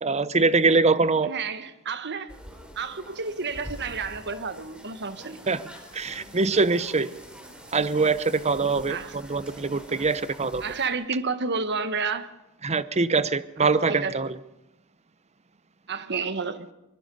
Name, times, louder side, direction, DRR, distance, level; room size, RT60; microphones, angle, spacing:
voice 1, 0.0-1.3 5.5-5.6 5.9-7.1 7.7-10.6 12.6-14.3, right 4 dB, 30° right, 15 dB, 0.8 m, -23 dB
voice 2, 1.2-2.3 2.7-5.4 8.9-9.2 10.6-12.3 13.6-14.2 15.9-16.7, right 4 dB, 50° right, 11 dB, 1.4 m, -31 dB
sound 1, 2.3-10.9, equal, 5° right, 4.0 m, -45 dB
24.0 x 22.5 x 5.4 m, 0.92 s
head